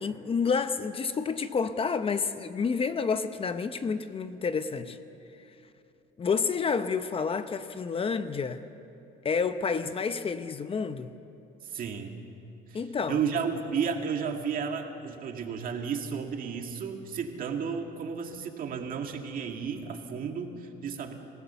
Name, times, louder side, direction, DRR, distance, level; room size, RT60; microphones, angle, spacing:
voice 1, 0.0-5.0 6.2-8.6 9.2-11.1 12.7-13.2, left 5 dB, 35° left, 11 dB, 0.8 m, -29 dB
voice 2, 11.6-12.1 12.7-12.8 13.1-21.1, right 6 dB, 55° right, 4 dB, 2.1 m, -33 dB
26.0 x 16.0 x 6.9 m, 2.8 s
cardioid pair, 110°, 17 cm